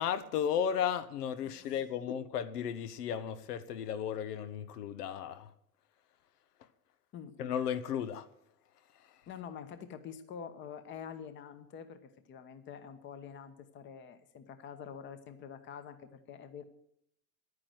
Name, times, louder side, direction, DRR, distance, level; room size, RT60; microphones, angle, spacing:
voice 1, 0.0-5.5 7.4-8.3, left 8 dB, 80° left, 1.3 m, -34 dB
voice 2, 1.4-2.2 7.1-7.3 9.3-16.6, left 7 dB, 25° left, 1.0 m, -47 dB
11.0 x 9.8 x 7.8 m
supercardioid pair, 145°, 46 cm